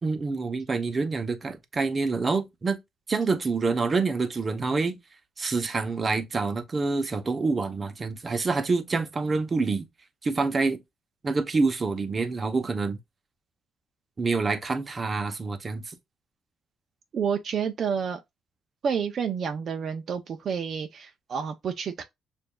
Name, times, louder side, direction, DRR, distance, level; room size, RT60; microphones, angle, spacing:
voice 1, 0.0-2.8 3.1-5.0 5.4-9.9 10.2-10.8 11.2-13.0 14.2-15.9, right 4 dB, 35° right, 0.9 m, -27 dB
voice 2, 17.1-18.2 18.8-22.0, right 7 dB, 55° right, 0.6 m, -29 dB
6.8 x 2.6 x 2.3 m
cardioid pair, 90°, 0 cm